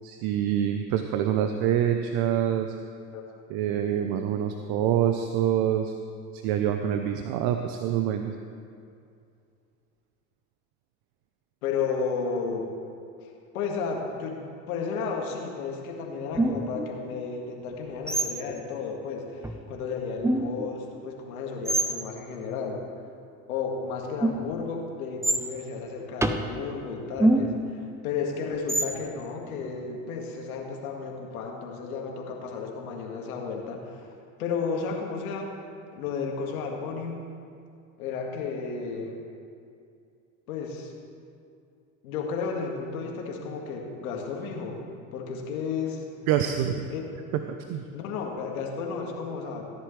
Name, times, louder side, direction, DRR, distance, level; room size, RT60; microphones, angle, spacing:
voice 1, 0.0-2.8 3.5-5.9 6.3-8.3 46.3-46.9 47.7-47.8, right 10 dB, 60° right, 6 dB, 0.8 m, -26 dB
voice 2, 11.6-12.7 13.2-22.8 23.5-34.1 34.4-35.6 35.9-37.2 38.0-39.2 40.5-40.9 42.0-44.8 45.1-46.0 46.9-47.0 47.9-49.7, left 5 dB, 80° left, 1 dB, 1.9 m, -33 dB
sound 1, 16.4-16.9 18.1-18.5 19.4-19.6 20.2-20.7 21.7-21.9 24.2-24.6 25.2-25.5 26.2-26.5 27.2-27.7 28.7-29.0, right 1 dB, 5° right, 0.7 m, -25 dB
17.0 x 10.5 x 3.2 m, 2.4 s
hypercardioid pair, 85°, 42 cm